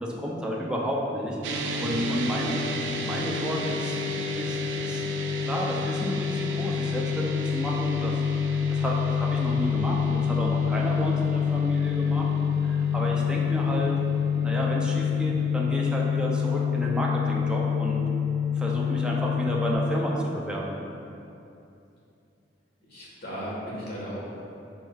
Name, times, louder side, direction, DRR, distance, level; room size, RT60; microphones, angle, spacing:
voice 1, 0.0-4.0 4.4-5.0 5.4-8.2 8.5-12.3 12.6-13.9 14.4-18.0 18.6-20.8, equal, 5° right, -3 dB, 0.5 m, -31 dB
sound 1, 1.4-19.8, left 6 dB, 80° right, 0.4 m, -27 dB
voice 2, 22.9-24.2, equal, 60° left, -7 dB, 1.4 m, -36 dB
4.7 x 4.6 x 2.3 m, 2.7 s
head